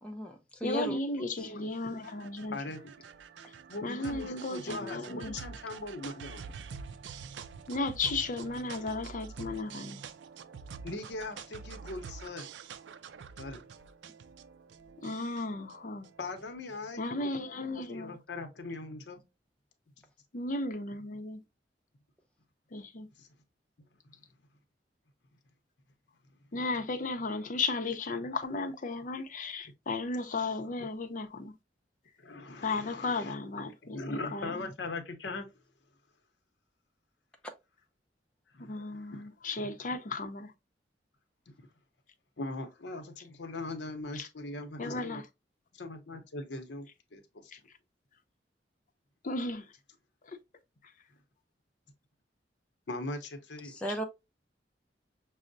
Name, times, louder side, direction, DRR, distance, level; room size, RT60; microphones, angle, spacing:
voice 1, 0.0-1.0 1.4-1.5 53.6-54.0, equal, 5° left, 0.5 m, -36 dB
voice 2, 0.6-2.6 3.8-5.4 7.7-10.0 15.0-16.1 17.0-18.1 20.3-21.4 22.7-23.1 26.5-31.5 32.6-34.5 38.6-40.5 44.1-44.3 44.8-45.2 47.5-47.6 49.2-49.7 53.9-54.0, left 3 dB, 50° left, 0.6 m, -35 dB
sound 1, 1.4-16.9, right 5 dB, 85° right, 0.4 m, -47 dB
voice 3, 2.5-2.9 3.7-6.4 10.8-12.5 13.4-13.7 16.2-17.0 17.9-19.2 23.2-23.3 24.0-24.2 32.2-33.4 33.8-35.5 38.5-39.2 41.5-41.7 42.4-45.1 45.7-47.5 52.9-53.8, left 2 dB, 80° left, 0.8 m, -40 dB
6.1 x 2.1 x 2.5 m
head